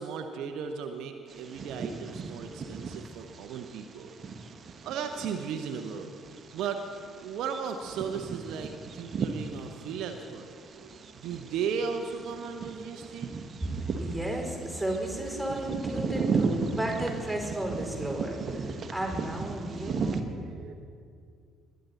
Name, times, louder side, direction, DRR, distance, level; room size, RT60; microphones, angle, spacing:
voice 1, 0.0-4.2 4.8-6.1 6.5-6.8 7.1-13.3 15.6-15.7 20.0-20.7, right 6 dB, 60° right, 6 dB, 0.7 m, -36 dB
Bird vocalization bird call bird song, 1.3-20.2, right 5 dB, 40° right, 1.1 m, -36 dB
voice 2, 14.0-20.4, right 1 dB, ahead, -1 dB, 4.4 m, -33 dB
20.5 x 10.5 x 4.1 m, 2.2 s
figure-of-eight pair, 50°, 0 cm